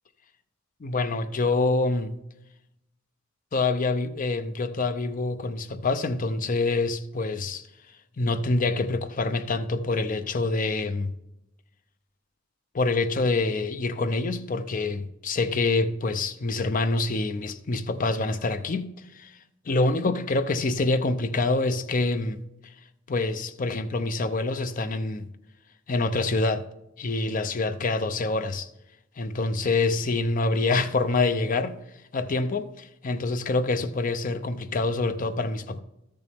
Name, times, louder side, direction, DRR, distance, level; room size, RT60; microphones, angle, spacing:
voice 1, 0.8-2.1 3.5-7.7 8.2-11.1 12.7-19.3 19.7-22.4 23.1-25.3 25.9-26.6 27.0-28.7 29.2-31.8 32.1-35.8, left 3 dB, 45° left, 0.5 m, -26 dB
13.0 x 6.8 x 3.5 m
head